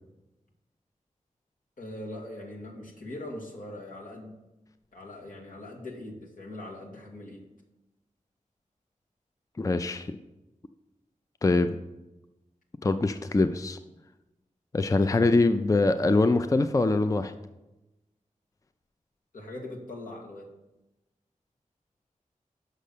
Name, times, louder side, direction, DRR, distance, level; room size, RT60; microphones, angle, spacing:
voice 1, 1.8-4.4 4.9-7.5 15.1-15.3 19.3-20.5, left 1 dB, 75° left, -1 dB, 1.8 m, -41 dB
voice 2, 9.6-10.2 11.4-11.8 12.8-13.8 14.7-17.3, left 2 dB, 25° left, 10 dB, 0.4 m, -23 dB
6.3 x 5.4 x 6.7 m, 1.0 s
wide cardioid pair, 55°, 14 cm